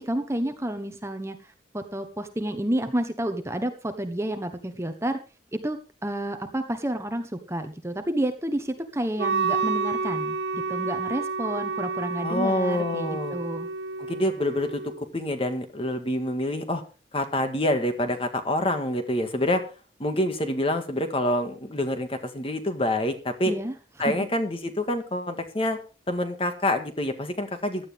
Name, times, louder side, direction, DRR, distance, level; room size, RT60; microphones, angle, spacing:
voice 1, 0.0-1.4 1.7-5.2 5.5-13.7 23.5-23.7 24.0-24.3, right 1 dB, 15° right, 8 dB, 1.1 m, -30 dB
Wind instrument woodwind instrument, 9.2-15.0, right 4 dB, 80° right, 1.1 m, -30 dB
voice 2, 12.2-13.4 14.1-16.8 17.1-19.6 20.0-23.5 24.0-25.8 26.1-27.9, left 1 dB, 30° left, 7 dB, 1.9 m, -27 dB
16.5 x 12.0 x 3.6 m, 0.33 s
head